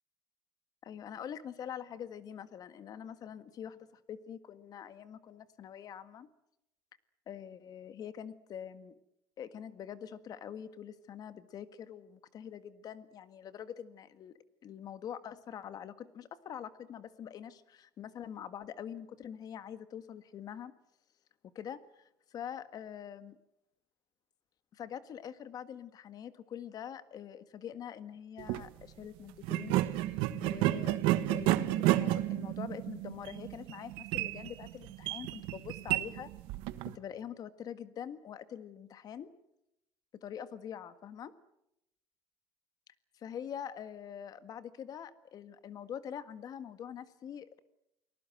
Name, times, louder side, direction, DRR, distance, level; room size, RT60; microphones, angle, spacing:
voice 1, 0.8-6.3 7.3-8.9 9.4-14.3 14.6-20.7 21.6-23.4 24.7-31.0 31.3-36.3 36.9-39.3 40.2-41.3 43.1-47.6, left 9 dB, 50° left, 12 dB, 1.7 m, -45 dB
sound 1, 28.4-28.6 29.4-36.9, right 16 dB, 80° right, 1.4 m, -31 dB
29.5 x 19.5 x 7.8 m, 0.85 s
cardioid pair, 110°, 9 cm